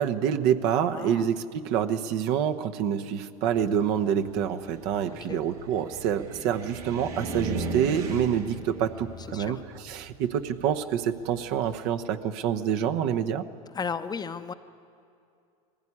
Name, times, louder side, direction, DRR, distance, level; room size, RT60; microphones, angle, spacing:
voice 1, 0.0-13.4, right 9 dB, 60° right, 7 dB, 1.0 m, -27 dB
voice 2, 0.9-1.3 5.1-5.4 9.3-9.6 13.7-14.5, left 6 dB, 20° left, 10 dB, 0.7 m, -34 dB
Car, 3.5-11.8, right 3 dB, 85° right, 2.7 m, -38 dB
20.5 x 15.5 x 9.8 m, 2.5 s
hypercardioid pair, 105°, 19 cm